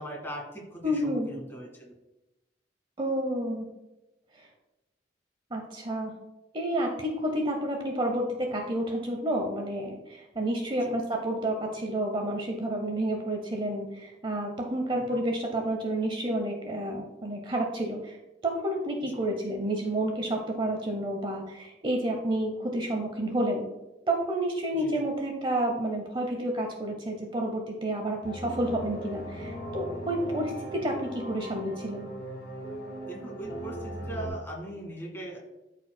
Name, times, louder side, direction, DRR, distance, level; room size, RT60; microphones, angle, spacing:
voice 1, 0.0-1.9 10.8-10.9 14.9-15.2 24.8-24.9 33.1-35.4, right 1 dB, 15° left, -2 dB, 1.8 m, -40 dB
voice 2, 0.8-1.3 3.0-3.7 4.4-4.5 5.5-6.1 6.5-18.2 18.4-23.6 24.1-32.1, right 1 dB, 30° right, 2 dB, 0.8 m, -30 dB
sound 1, 28.2-34.3, equal, 55° left, 2.3 m, -38 dB
12.5 x 4.5 x 2.2 m, 0.98 s
head